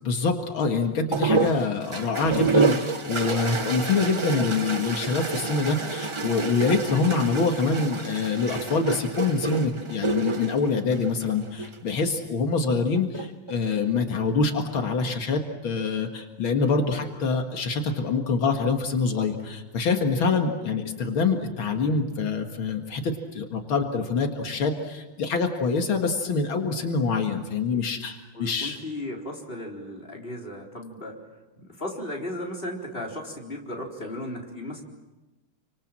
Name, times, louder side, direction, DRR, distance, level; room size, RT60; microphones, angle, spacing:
voice 1, 0.0-28.8, left 4 dB, 80° left, 4 dB, 2.6 m, -25 dB
sound 1, 1.1-11.8 13.0-13.5, right 4 dB, 50° right, 0.3 m, -28 dB
voice 2, 28.3-31.2 31.6-34.8, left 1 dB, 25° left, 0 dB, 4.4 m, -35 dB
29.0 x 25.5 x 7.6 m, 1.1 s
omnidirectional pair, 2.2 m